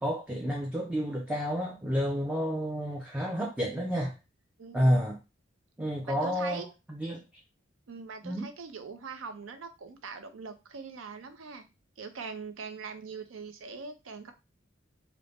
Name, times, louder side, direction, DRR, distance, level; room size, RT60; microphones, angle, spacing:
voice 1, 0.0-4.1 4.7-5.2 5.8-7.2 8.2-8.5, equal, 5° right, 0.4 m, -30 dB
voice 2, 4.6-5.0 6.1-6.7 7.9-11.6 12.0-14.3, right 4 dB, 75° right, 0.5 m, -42 dB
2.5 x 2.0 x 3.3 m
head